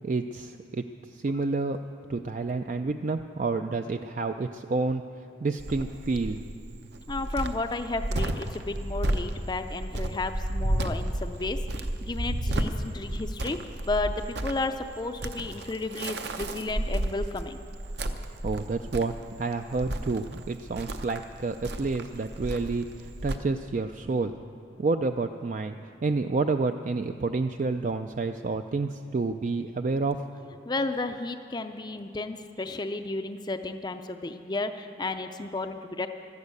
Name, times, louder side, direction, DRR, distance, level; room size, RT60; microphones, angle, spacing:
voice 1, 0.0-1.8 2.1-6.4 18.4-24.3 24.8-25.7 26.0-30.2, right 3 dB, 40° right, 7 dB, 0.4 m, -29 dB
Cricket, 5.6-23.4, right 1 dB, 65° right, 0.9 m, -32 dB
voice 2, 7.1-11.6 12.0-13.6 13.8-17.6 30.6-36.1, left 2 dB, 25° left, 7 dB, 0.4 m, -32 dB
13.0 x 12.0 x 8.3 m, 2.6 s
head